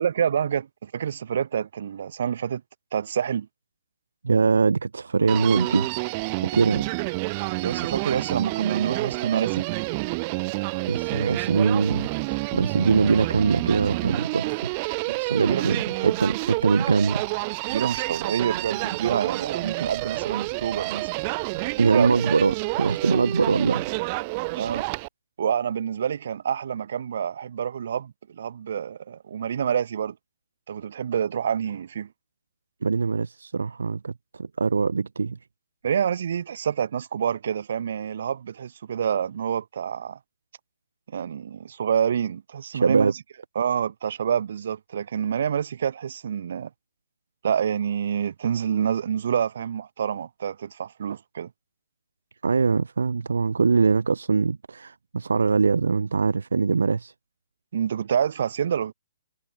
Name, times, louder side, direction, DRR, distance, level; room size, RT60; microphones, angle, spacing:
voice 1, 0.0-2.6 2.9-3.5 7.6-9.7 11.2-11.4 15.1-15.8 17.7-21.1 21.6-22.1 24.5-24.8 25.4-30.2 30.7-32.1 35.8-40.2 41.1-43.1 43.5-46.7 47.4-51.5 57.7-58.9, right 8 dB, 65° right, 6.5 m, -27 dB
voice 2, 4.2-5.9 6.4-6.9 10.9-14.7 15.3-17.2 21.8-23.9 32.8-35.4 42.7-43.1 52.4-57.1, right 4 dB, 90° right, 4.4 m, -22 dB
Human voice, 5.3-25.1, right 27 dB, 35° right, 3.8 m, -29 dB
hypercardioid pair, 145°, 0 cm